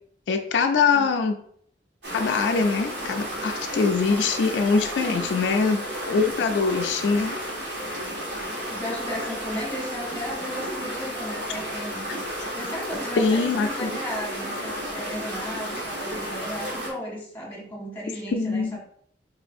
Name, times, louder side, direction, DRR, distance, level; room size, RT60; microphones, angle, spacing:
voice 1, 0.3-1.3 2.1-7.4 13.2-13.9 18.3-18.8, left 4 dB, 85° left, 5 dB, 0.3 m, -23 dB
sound 1, 2.0-16.9, equal, 80° right, 1.2 m, -32 dB
voice 2, 5.0-5.3 8.7-12.0 12.5-18.8, equal, 10° left, -4 dB, 1.2 m, -35 dB
3.7 x 3.2 x 2.6 m, 0.65 s
head